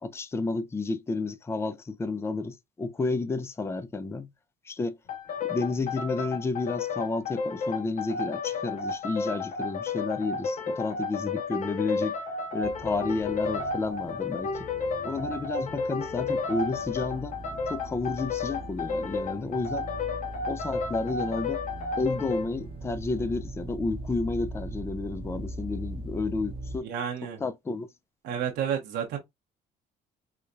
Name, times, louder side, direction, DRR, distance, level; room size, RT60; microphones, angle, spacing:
voice 1, 0.0-4.3 4.7-5.0 5.4-12.2 12.5-14.7 15.0-17.3 17.7-19.9 20.5-21.6 22.0-26.9 27.4-27.9, left 3 dB, 15° left, 0.4 m, -31 dB
sound 1, 5.1-22.5, left 4 dB, 50° left, 0.7 m, -32 dB
sound 2, 12.6-26.8, right 1 dB, 30° right, 0.8 m, -41 dB
voice 2, 26.8-27.4 28.2-29.2, right 8 dB, 80° right, 1.0 m, -30 dB
4.8 x 2.2 x 2.6 m
cardioid pair, 110°, 17 cm